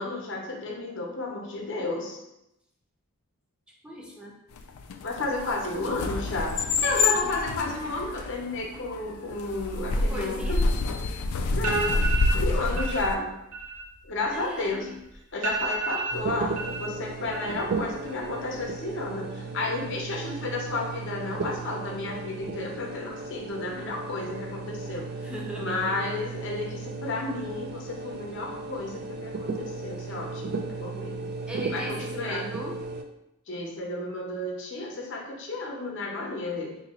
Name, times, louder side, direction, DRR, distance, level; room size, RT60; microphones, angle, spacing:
voice 1, 0.0-2.2 5.0-10.6 11.5-11.9 12.3-13.3 14.0-14.9 15.3-25.1 25.6-31.3 31.7-32.5 33.5-36.8, left 2 dB, 55° left, -1 dB, 0.7 m, -32 dB
voice 2, 3.8-4.3 10.0-10.6 14.3-15.0 25.2-25.9 31.5-32.8, equal, 5° right, -2 dB, 0.6 m, -38 dB
sound 1, 4.6-13.1, left 3 dB, 75° left, 0.4 m, -28 dB
sound 2, 11.6-12.4 12.8-13.1 13.4-14.9 15.1-15.2 15.4-16.9 17.2-17.8 18.1-18.6, right 4 dB, 75° right, 1.1 m, -32 dB
sound 3, 16.1-33.0, right 3 dB, 45° right, 0.3 m, -35 dB
2.9 x 2.7 x 4.2 m, 0.87 s
head